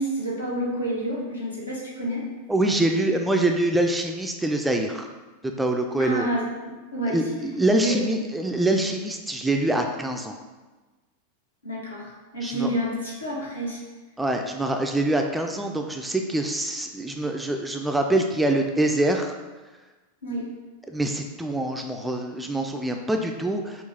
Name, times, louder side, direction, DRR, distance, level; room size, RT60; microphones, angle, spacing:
voice 1, 0.0-2.2 6.0-7.2 7.8-8.0 11.6-13.8 20.2-20.5, right 1 dB, 80° left, -4 dB, 1.1 m, -29 dB
voice 2, 2.5-5.1 5.4-6.3 7.1-10.4 12.4-12.7 14.2-19.3 20.9-23.8, right 1 dB, 5° right, 3 dB, 0.3 m, -25 dB
5.7 x 2.4 x 3.3 m, 1.2 s
figure-of-eight pair, 90°, 0 cm